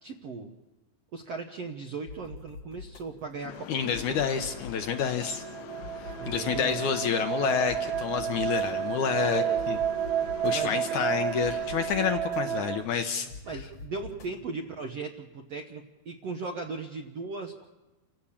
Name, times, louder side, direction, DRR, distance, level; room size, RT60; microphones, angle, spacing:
voice 1, 0.0-0.5 1.1-4.3 6.2-6.8 9.2-9.8 10.5-11.1 13.4-17.7, right 4 dB, 65° right, 3 dB, 1.6 m, -38 dB
sound 1, 2.1-14.4, left 4 dB, 55° left, 1.9 m, -47 dB
sound 2, 3.5-12.0, left 12 dB, 85° left, 2.7 m, -46 dB
voice 2, 3.7-5.4 6.0-9.8 10.4-13.3, left 7 dB, 70° left, 7 dB, 2.0 m, -29 dB
sound 3, 4.5-12.8, right 10 dB, 90° right, 2.8 m, -31 dB
29.0 x 15.5 x 7.3 m, 1.1 s
omnidirectional pair, 4.2 m